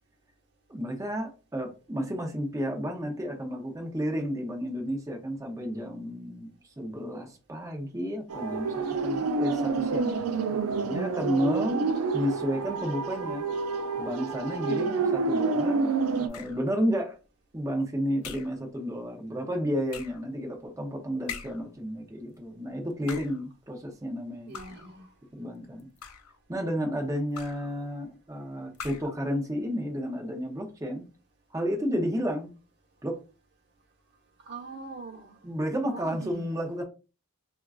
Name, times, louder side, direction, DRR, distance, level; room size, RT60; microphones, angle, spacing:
voice 1, 0.7-11.8 12.1-13.4 14.0-17.2 17.5-24.5 25.4-25.9 26.5-31.1 31.5-32.5 33.0-33.2 35.4-36.8, equal, 15° right, 0.6 m, -32 dB
sound 1, 8.3-16.3, right 4 dB, 90° right, 0.4 m, -28 dB
voice 2, 14.7-15.1 24.5-25.1 34.4-35.4 35.9-36.4, right 4 dB, 50° right, 1.1 m, -41 dB
sound 2, 16.3-16.7 18.2-18.6 19.9-20.3 21.3-21.7 22.9-23.5 24.5-25.0 25.8-26.4 27.3-27.7 28.7-29.2, left 7 dB, 90° left, 0.5 m, -42 dB
4.3 x 2.4 x 2.3 m
head